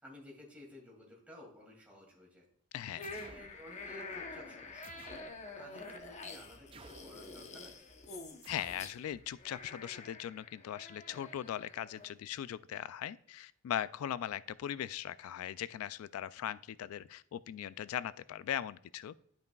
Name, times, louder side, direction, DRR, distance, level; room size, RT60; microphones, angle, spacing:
voice 1, 0.0-2.4 3.1-5.0 5.6-7.8, left 1 dB, 5° right, -2 dB, 2.3 m, -54 dB
voice 2, 2.7-3.2 8.5-19.1, left 10 dB, 85° left, 16 dB, 0.3 m, -39 dB
sound 1, 2.9-12.1, left 3 dB, 35° left, 0.8 m, -48 dB
sound 2, 3.0-3.5 4.8-5.4 6.7-7.2 8.4-8.9, right 4 dB, 25° right, 0.3 m, -54 dB
12.0 x 5.3 x 2.3 m, 0.64 s
head